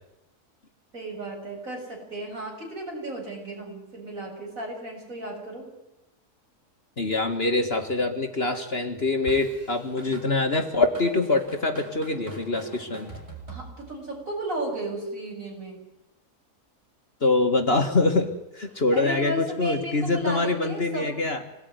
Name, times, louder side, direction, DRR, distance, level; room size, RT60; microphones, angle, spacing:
voice 1, 0.9-5.7 13.5-15.8 18.9-21.2, right 1 dB, 60° right, 0 dB, 7.9 m, -34 dB
voice 2, 7.0-13.1 17.2-21.4, left 2 dB, 40° left, 5 dB, 2.1 m, -24 dB
Drum kit / Drum, 9.3-14.1, right 3 dB, 40° right, 7.5 m, -43 dB
25.5 x 19.0 x 9.7 m, 0.91 s
omnidirectional pair, 1.6 m